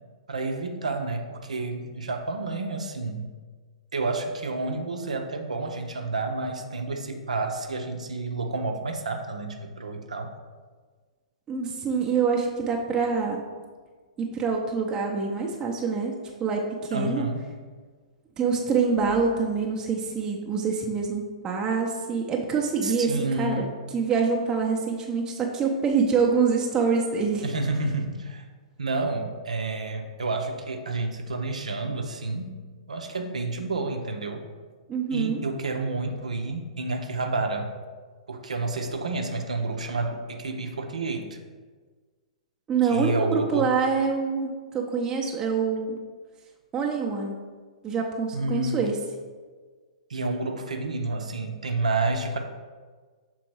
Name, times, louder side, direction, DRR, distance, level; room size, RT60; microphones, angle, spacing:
voice 1, 0.3-3.3 3.9-10.3 16.9-17.4 22.8-23.7 27.4-28.5 28.8-32.5 32.9-34.4 35.1-37.7 38.3-41.4 42.8-43.7 48.3-48.9 50.1-52.4, right 3 dB, 70° right, 4 dB, 0.7 m, -30 dB
voice 2, 11.5-13.4 14.2-16.1 16.4-17.2 18.4-27.4 34.9-35.4 42.7-46.0 46.7-47.5 47.8-49.0, right 5 dB, 15° right, -1 dB, 0.7 m, -25 dB
6.0 x 3.8 x 4.6 m, 1.5 s
figure-of-eight pair, 115°, 4 cm